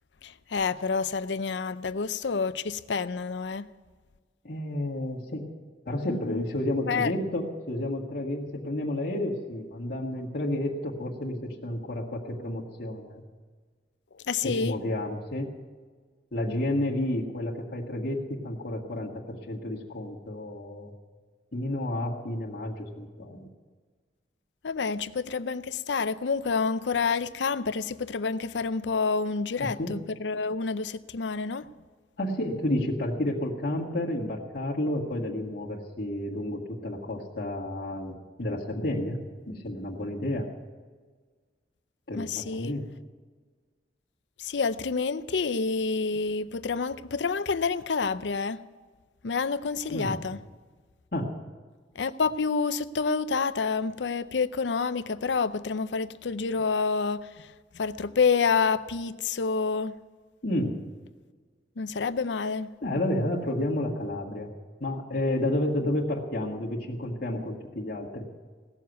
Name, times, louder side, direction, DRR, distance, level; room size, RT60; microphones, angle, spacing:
voice 1, 0.2-3.7 6.1-6.4 6.9-7.1 14.3-14.7 24.6-31.7 42.2-42.7 44.4-48.6 49.2-50.4 52.0-57.5 57.7-59.9 61.8-62.7, left 5 dB, 80° left, 14 dB, 0.6 m, -28 dB
voice 2, 4.4-5.4 5.9-13.2 14.4-15.5 16.3-18.2 18.4-20.9 21.5-23.5 29.6-30.0 32.2-40.5 42.1-42.9 49.9-50.2 51.1-51.4 60.4-60.8 62.8-64.5 64.8-68.3, left 1 dB, 60° left, -4 dB, 1.8 m, -31 dB
17.5 x 7.2 x 9.3 m, 1.5 s
head